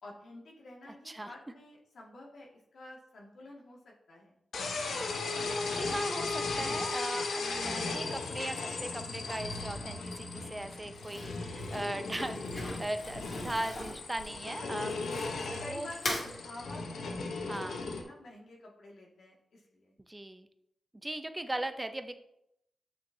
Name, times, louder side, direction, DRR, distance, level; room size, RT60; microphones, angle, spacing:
voice 1, 0.0-4.4 14.6-14.9 15.6-19.9, left 2 dB, 75° left, -2 dB, 1.9 m, -49 dB
voice 2, 0.9-1.3 5.7-15.0 15.4-15.9 17.5-17.8 20.1-20.5 21.0-22.2, right 1 dB, 15° right, 9 dB, 0.6 m, -38 dB
sound 1, 4.5-18.0, left 3 dB, 90° left, 0.9 m, -36 dB
Crumpling crinkling, 10.9-15.5 15.9-16.3, left 1 dB, 50° left, 2.5 m, -40 dB
8.9 x 6.3 x 2.7 m, 0.78 s
cardioid pair, 90°, 0 cm